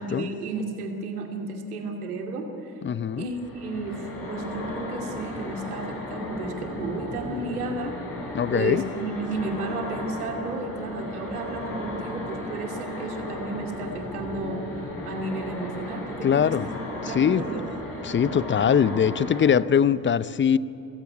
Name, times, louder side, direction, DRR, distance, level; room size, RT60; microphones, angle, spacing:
voice 1, 0.0-2.7 3.2-16.7 17.1-17.6, right 3 dB, 85° right, 3 dB, 2.7 m, -33 dB
voice 2, 2.8-3.3 8.3-8.8 16.2-16.7 17.0-17.4 18.0-20.6, left 8 dB, 25° left, 18 dB, 0.7 m, -22 dB
sound 1, 3.1-19.5, left 1 dB, 50° left, 7.6 m, -35 dB
28.5 x 16.5 x 9.6 m, 2.8 s
hypercardioid pair, 60°, 43 cm